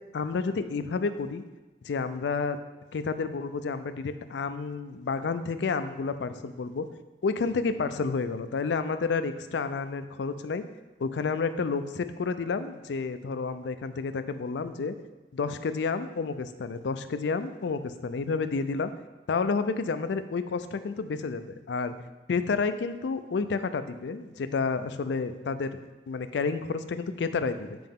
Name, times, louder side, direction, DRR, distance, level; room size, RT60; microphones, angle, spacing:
voice 1, 0.1-1.4 1.8-2.6 2.9-6.8 7.2-10.6 11.0-14.9 15.3-18.9 19.3-21.9 22.3-25.8 26.1-27.8, left 4 dB, 85° left, 11 dB, 0.4 m, -30 dB
7.7 x 5.1 x 3.6 m, 1.2 s
head